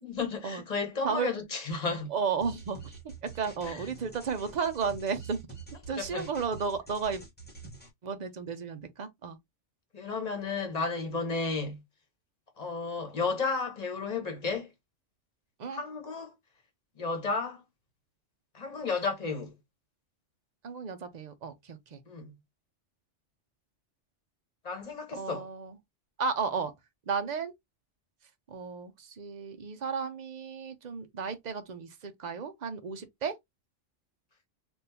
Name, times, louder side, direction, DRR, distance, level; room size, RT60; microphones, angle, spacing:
voice 1, 0.0-2.1 3.6-3.8 5.9-6.3 9.9-11.8 12.6-14.7 15.7-16.3 17.0-17.6 18.5-19.5 22.1-22.3 24.6-25.5, left 4 dB, 35° left, 1.0 m, -33 dB
voice 2, 2.1-5.4 5.9-7.2 8.0-9.4 15.6-15.8 20.6-22.0 25.1-25.8 26.2-26.7 27.1-27.5 28.5-33.3, right 5 dB, 50° right, 0.6 m, -33 dB
sound 1, 2.4-7.9, right 4 dB, 10° left, 1.1 m, -46 dB
3.5 x 2.5 x 2.7 m
omnidirectional pair, 1.2 m